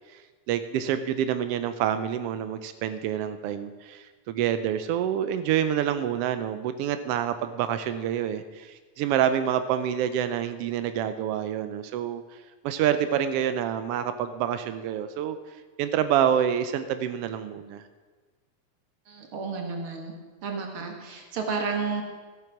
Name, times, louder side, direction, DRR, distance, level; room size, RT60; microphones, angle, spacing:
voice 1, 0.5-12.2 12.6-15.4 15.8-17.8, right 9 dB, 85° right, 11 dB, 1.3 m, -27 dB
voice 2, 19.1-20.1 20.4-22.0, right 5 dB, 50° right, 2 dB, 2.4 m, -31 dB
14.0 x 9.1 x 5.9 m, 1.3 s
omnidirectional pair, 3.3 m